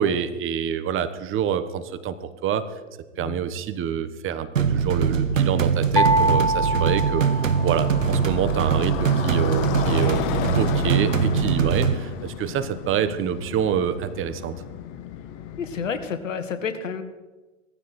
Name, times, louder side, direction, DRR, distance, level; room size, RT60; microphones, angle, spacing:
voice 1, 0.0-2.2 2.4-2.7 3.2-10.3 10.5-14.5, right 9 dB, 30° right, 12 dB, 1.3 m, -26 dB
sound 1, 4.6-11.9, right 6 dB, 85° right, 1.2 m, -22 dB
Motorcycle, 4.7-16.2, left 10 dB, 50° left, 1.4 m, -33 dB
sound 2, 6.0-8.1, right 1 dB, 10° left, 0.8 m, -23 dB
voice 2, 15.6-17.0, left 6 dB, 75° left, 9 dB, 1.9 m, -30 dB
17.5 x 15.0 x 4.5 m, 1.2 s
hypercardioid pair, 95°, 38 cm